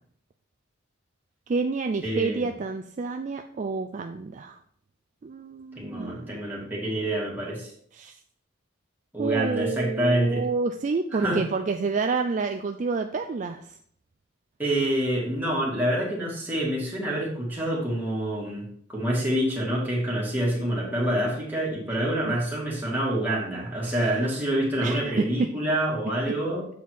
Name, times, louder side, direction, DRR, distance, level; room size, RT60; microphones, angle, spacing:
voice 1, 1.5-4.6 5.2-6.4 7.9-8.2 9.2-13.8 22.3-22.4 23.8-24.3 24.8-25.3, right 4 dB, 40° right, 6 dB, 0.3 m, -29 dB
voice 2, 2.0-2.5 5.8-7.7 9.1-10.5 11.1-11.4 14.6-26.7, right 1 dB, 10° right, -5 dB, 2.2 m, -27 dB
7.6 x 4.1 x 4.6 m, 0.63 s
head